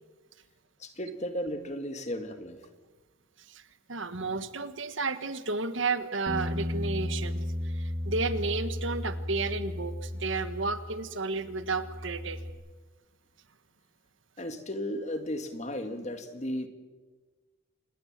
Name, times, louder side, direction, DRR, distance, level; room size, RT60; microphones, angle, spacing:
voice 1, 0.8-2.6 14.4-16.7, equal, 35° left, 8 dB, 2.0 m, -35 dB
voice 2, 3.9-12.4, right 3 dB, 65° right, 11 dB, 1.5 m, -32 dB
Bass guitar, 6.3-11.0 11.3-12.5, left 1 dB, 40° right, 2.6 m, -34 dB
27.0 x 20.0 x 7.5 m, 1.3 s
head